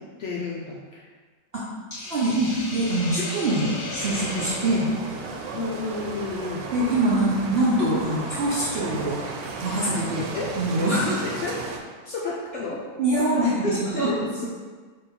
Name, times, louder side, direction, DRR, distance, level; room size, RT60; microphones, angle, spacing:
voice 1, 0.2-1.1 5.5-6.7 10.3-10.5 11.4-11.6 12.0-12.8 13.1-14.5, left 3 dB, 70° left, -5 dB, 0.6 m, -31 dB
Hiss, 1.9-6.2, left 2 dB, 35° left, 1.2 m, -36 dB
voice 2, 2.1-4.9 6.7-9.2 9.6-10.3 10.6-11.2 13.0-14.2, right 1 dB, 60° right, -8 dB, 0.6 m, -24 dB
sound 1, 4.0-11.8, right 4 dB, 85° right, 1.2 m, -35 dB
3.8 x 2.9 x 4.3 m, 1.4 s
omnidirectional pair, 1.9 m